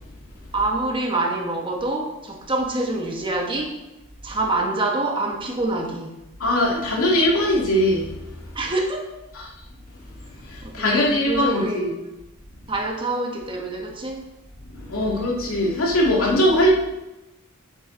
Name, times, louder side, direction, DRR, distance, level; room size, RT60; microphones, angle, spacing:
voice 1, 0.5-3.7 4.2-6.1 8.5-9.1 10.6-11.9 12.7-14.2 14.9-15.2, right 2 dB, 25° right, 1 dB, 1.4 m, -26 dB
voice 2, 6.4-8.5 9.3-9.5 10.4-12.0 14.7-16.7, left 1 dB, 75° left, -3 dB, 2.5 m, -21 dB
8.7 x 7.9 x 3.9 m, 0.95 s
head